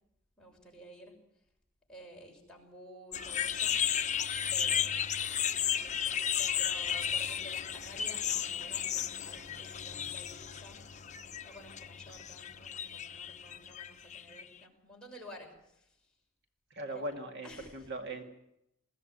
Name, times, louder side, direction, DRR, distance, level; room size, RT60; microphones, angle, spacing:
voice 1, 0.4-1.1 1.9-3.8 4.5-5.1 5.8-10.8 11.4-16.0 16.9-17.1 17.4-17.9, equal, 5° left, -2 dB, 6.3 m, -52 dB
sound 1, 3.1-14.6, left 9 dB, 35° left, 1.0 m, -34 dB
voice 2, 16.7-18.2, right 1 dB, 55° right, 4 dB, 2.2 m, -39 dB
21.0 x 16.5 x 9.3 m, 0.80 s
head